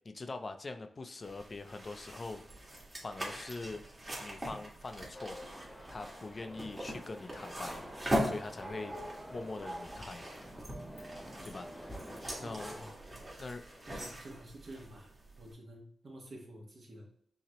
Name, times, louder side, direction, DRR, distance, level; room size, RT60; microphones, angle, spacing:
voice 1, 0.0-2.4 3.0-3.8 4.2-5.4 5.9-7.8 8.2-9.0 9.3-10.3 11.4-12.7 13.4-13.6, left 3 dB, 40° left, 7 dB, 0.5 m, -43 dB
sound 1, 1.2-15.5, equal, 30° right, 1.7 m, -41 dB
sound 2, 5.1-12.9, equal, ahead, 1.2 m, -48 dB
voice 2, 12.4-12.9 13.9-15.1 15.4-17.1, right 1 dB, 60° right, -2 dB, 1.6 m, -50 dB
5.7 x 2.8 x 3.0 m, 0.66 s
cardioid pair, 70°, 0 cm